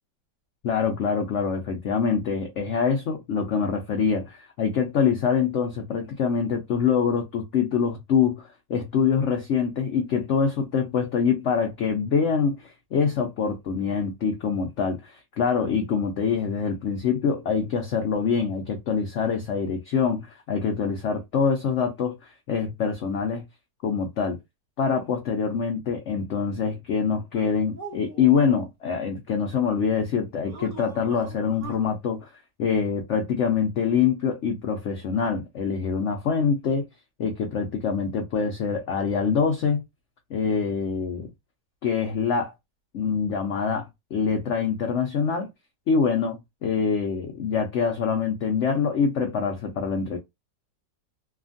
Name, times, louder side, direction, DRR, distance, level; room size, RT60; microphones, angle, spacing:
voice 1, 0.6-23.4 23.8-24.4 24.8-32.3 32.6-36.9 37.2-39.8 40.3-41.3 41.8-42.5 42.9-45.5 45.9-50.2, left 6 dB, 85° left, 0.6 m, -25 dB
sound 1, 27.3-28.6 30.4-31.9, right 3 dB, 35° right, 0.9 m, -40 dB
2.8 x 2.4 x 2.5 m
omnidirectional pair, 1.9 m